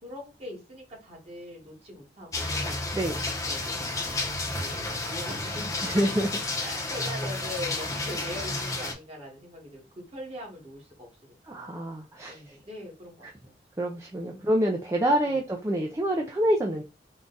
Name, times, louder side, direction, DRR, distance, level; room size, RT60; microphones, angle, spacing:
voice 1, 0.0-2.8 3.4-3.8 4.4-5.8 6.1-6.2 6.6-11.8 12.3-13.5 14.3-14.5 15.2-15.4, equal, 35° right, 1.5 m, -42 dB
sound 1, 2.3-8.9, left 2 dB, 20° left, 0.8 m, -31 dB
voice 2, 5.8-6.4 11.5-12.5 13.8-16.8, right 1 dB, 15° right, 0.4 m, -27 dB
3.7 x 2.3 x 3.9 m
head